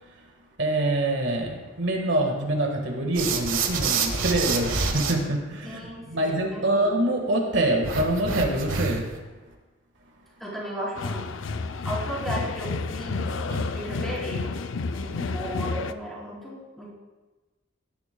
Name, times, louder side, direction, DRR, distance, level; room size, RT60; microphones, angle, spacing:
voice 1, 0.6-9.1 13.5-13.6, right 1 dB, 70° right, 2 dB, 1.6 m, -25 dB
sound 1, 3.1-5.1 7.8-9.2, right 5 dB, 90° right, 1.4 m, -27 dB
voice 2, 5.6-6.9 10.4-13.3 13.7-14.6 14.9-16.9, equal, ahead, -7 dB, 3.5 m, -35 dB
sound 2, 11.0-15.9, left 3 dB, 75° left, 0.5 m, -30 dB
17.0 x 11.5 x 2.2 m, 1.2 s
head